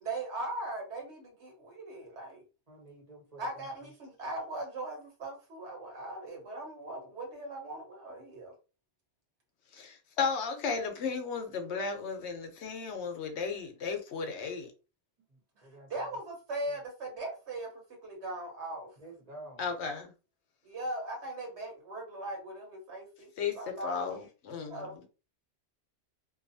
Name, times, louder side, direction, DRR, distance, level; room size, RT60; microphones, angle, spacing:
voice 1, 0.0-2.4 3.4-8.5 15.9-17.7 18.0-18.9 20.6-23.3 23.5-24.2 24.5-25.1, right 2 dB, 70° right, 1.3 m, -39 dB
voice 2, 2.7-3.7 15.3-16.1 19.0-19.7, right 2 dB, 35° right, 1.0 m, -50 dB
voice 3, 9.7-14.7 19.6-20.1 23.4-25.0, left 5 dB, 75° left, 0.9 m, -35 dB
2.6 x 2.3 x 2.6 m
omnidirectional pair, 1.2 m